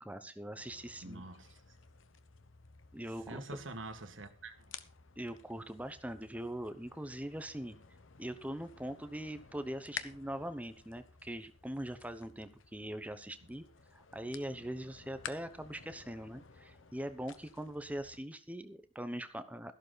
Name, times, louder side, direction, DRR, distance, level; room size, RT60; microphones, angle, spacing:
voice 1, 0.0-1.2 2.9-3.4 5.2-7.8 8.2-13.6 13.9-19.7, right 1 dB, 10° right, 1.0 m, -42 dB
sound 1, 0.6-18.2, left 7 dB, 90° left, 1.1 m, -53 dB
voice 2, 1.0-1.6 3.3-4.7 13.4-13.5, right 2 dB, 80° right, 1.8 m, -46 dB
14.0 x 12.0 x 4.1 m
head